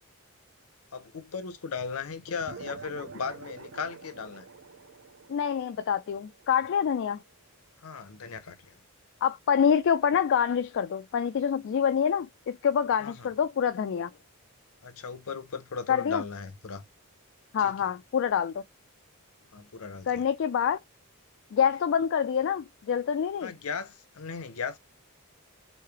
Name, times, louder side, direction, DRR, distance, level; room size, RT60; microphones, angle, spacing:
voice 1, 0.9-4.5 7.8-8.8 13.0-13.3 14.8-16.8 17.6-17.8 19.5-20.2 23.4-24.8, left 5 dB, 70° left, 0.7 m, -37 dB
sound 1, 2.4-7.2, right 4 dB, 55° right, 0.5 m, -47 dB
voice 2, 5.3-7.2 9.2-14.1 15.9-16.2 17.5-18.6 20.1-20.8 21.5-23.5, left 7 dB, 55° left, 0.3 m, -26 dB
3.2 x 2.8 x 4.5 m
head